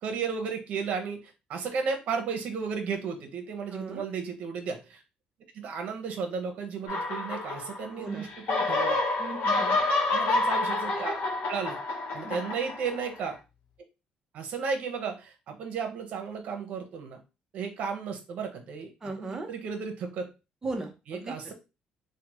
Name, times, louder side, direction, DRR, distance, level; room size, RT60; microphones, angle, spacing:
voice 1, 0.0-5.0 5.5-9.0 10.1-11.2 11.5-11.8 12.1-13.4 14.3-17.2 17.5-18.9 19.2-20.3 21.1-21.5, right 5 dB, 65° right, 5 dB, 0.9 m, -34 dB
voice 2, 3.7-4.0 8.0-8.2 9.2-9.8 12.2-12.4 19.0-19.5 20.6-21.5, right 2 dB, 20° right, 2 dB, 0.8 m, -37 dB
sound 1, 6.9-8.0 8.3-13.3, left 2 dB, 80° left, 0.9 m, -28 dB
3.3 x 2.3 x 3.0 m, 0.28 s
cardioid pair, 115°, 3 cm